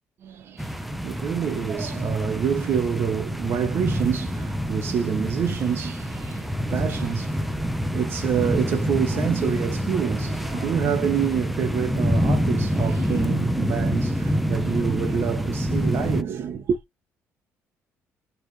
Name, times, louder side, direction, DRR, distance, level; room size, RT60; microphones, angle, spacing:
voice 1, 0.2-16.8, right 8 dB, 55° right, 0.9 m, -27 dB
sound 1, 0.6-16.2, equal, ahead, 0.6 m, -26 dB
4.5 x 3.3 x 3.2 m
cardioid pair, 130°, 5 cm